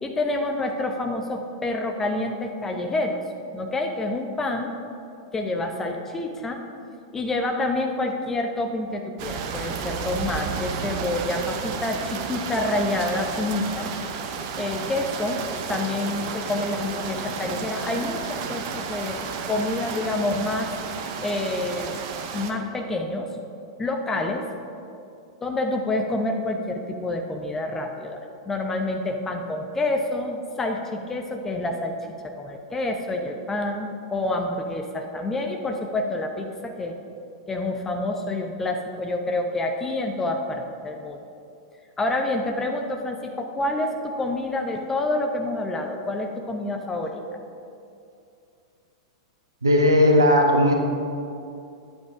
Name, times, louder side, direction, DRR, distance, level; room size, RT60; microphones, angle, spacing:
voice 1, 0.0-3.2 3.5-4.7 5.3-6.6 7.1-13.9 14.6-15.4 15.7-19.2 19.5-20.7 21.2-22.0 22.3-23.3 23.8-24.4 25.4-32.0 32.2-37.0 37.5-41.2 42.0-47.2, left 2 dB, 15° left, 3 dB, 1.0 m, -28 dB
sound 1, 9.2-22.5, right 6 dB, 45° right, 0.9 m, -32 dB
voice 2, 49.6-50.7, left 1 dB, 75° right, 2 dB, 1.4 m, -17 dB
10.5 x 8.5 x 4.9 m, 2.6 s
figure-of-eight pair, 95°, 2 cm